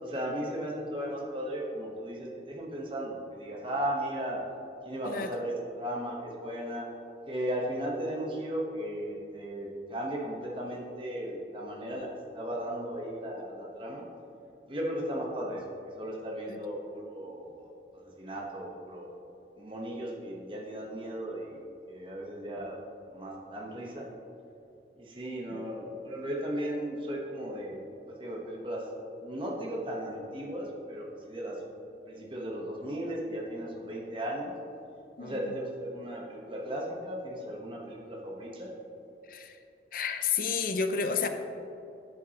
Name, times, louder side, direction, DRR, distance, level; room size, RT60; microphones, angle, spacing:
voice 1, 0.0-4.4 4.8-6.9 7.3-14.1 14.7-15.6 16.0-19.1 19.6-22.8 23.1-24.1 24.9-27.8 28.2-28.9 29.2-31.6 32.1-34.6 35.2-38.7, equal, 30° right, -2 dB, 1.1 m, -36 dB
voice 2, 35.2-35.5 39.3-39.6 39.9-41.3, left 6 dB, 50° left, 7 dB, 0.6 m, -31 dB
12.5 x 7.6 x 2.9 m, 2.9 s
head